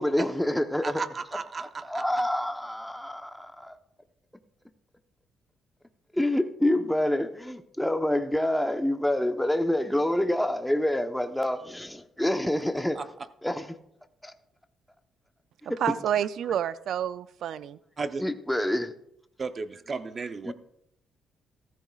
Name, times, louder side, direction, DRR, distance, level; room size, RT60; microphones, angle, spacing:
voice 1, 0.0-1.0 1.3-3.8 6.1-13.0 13.4-13.7 14.2-14.3 15.7-15.8 18.2-18.9 20.4-20.5, left 1 dB, 5° left, 0.9 m, -27 dB
voice 2, 0.8-1.8 13.0-13.1 18.0-18.2 19.4-20.5, right 4 dB, 40° right, 0.8 m, -34 dB
voice 3, 15.8-17.8, right 10 dB, 70° right, 0.4 m, -29 dB
15.0 x 13.5 x 2.4 m
cardioid pair, 90°, 0 cm